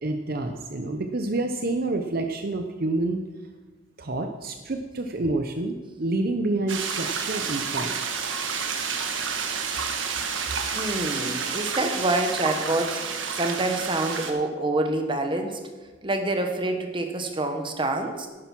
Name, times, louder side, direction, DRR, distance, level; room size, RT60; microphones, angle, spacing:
voice 1, 0.0-3.2 4.0-8.0, right 2 dB, 50° right, 5 dB, 0.8 m, -28 dB
sound 1, 6.7-14.3, right 6 dB, 85° right, 1.3 m, -30 dB
voice 2, 10.7-15.6 16.0-18.3, right 2 dB, 25° right, 5 dB, 1.2 m, -27 dB
11.0 x 9.1 x 6.0 m, 1.3 s
head